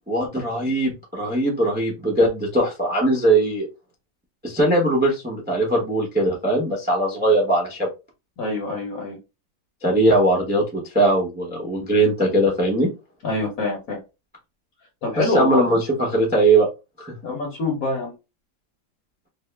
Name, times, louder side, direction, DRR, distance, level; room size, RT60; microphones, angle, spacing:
voice 1, 0.1-3.7 4.4-7.9 9.8-12.9 15.2-16.7 17.0-17.1, right 1 dB, 10° right, -2 dB, 0.4 m, -20 dB
voice 2, 8.4-9.2 13.2-14.0 15.0-15.6 17.2-18.1, left 2 dB, 55° left, -2 dB, 1.3 m, -25 dB
3.5 x 2.1 x 3.3 m, 0.27 s
omnidirectional pair, 2.1 m